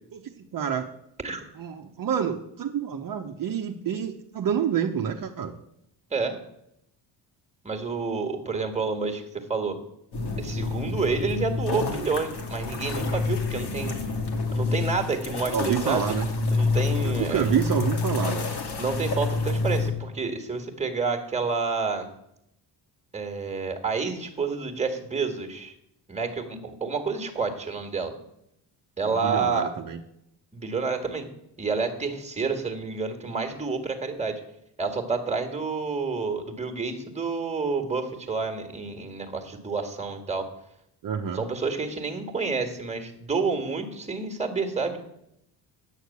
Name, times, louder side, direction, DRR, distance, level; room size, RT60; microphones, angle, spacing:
voice 1, 0.1-0.9 1.6-5.5 15.5-16.3 17.0-18.5 29.1-30.0 41.0-41.4, right 8 dB, 50° right, 3 dB, 0.9 m, -28 dB
voice 2, 7.6-9.8 10.4-13.9 14.5-16.2 16.5-17.5 18.8-22.1 23.1-25.7 26.1-28.1 29.0-29.7 30.5-31.3 31.6-34.4 34.8-40.5 41.3-45.0, right 4 dB, 15° right, 5 dB, 1.7 m, -29 dB
sound 1, 10.1-19.9, left 3 dB, 65° left, 2.2 m, -28 dB
9.1 x 6.5 x 8.4 m, 0.78 s
cardioid pair, 120°, 43 cm